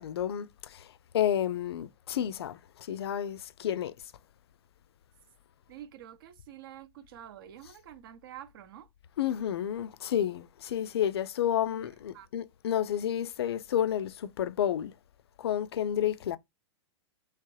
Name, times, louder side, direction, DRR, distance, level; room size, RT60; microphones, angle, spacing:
voice 1, 0.0-3.9 9.2-14.9 15.4-16.4, left 10 dB, 60° left, 0.4 m, -31 dB
voice 2, 5.7-8.9 11.6-12.3, right 11 dB, 50° right, 0.7 m, -48 dB
3.3 x 3.0 x 3.0 m
figure-of-eight pair, 105°, 15 cm